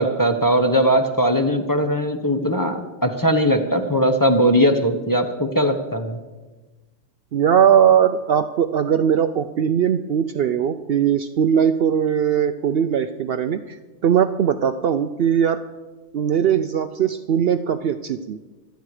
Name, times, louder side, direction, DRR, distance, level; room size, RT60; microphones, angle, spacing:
voice 1, 0.0-6.2, equal, 15° left, 6 dB, 1.0 m, -19 dB
voice 2, 7.3-13.8 14.0-15.6 16.1-18.4, right 8 dB, 60° right, 10 dB, 0.7 m, -19 dB
25.5 x 9.3 x 4.9 m, 1.2 s
omnidirectional pair, 1.3 m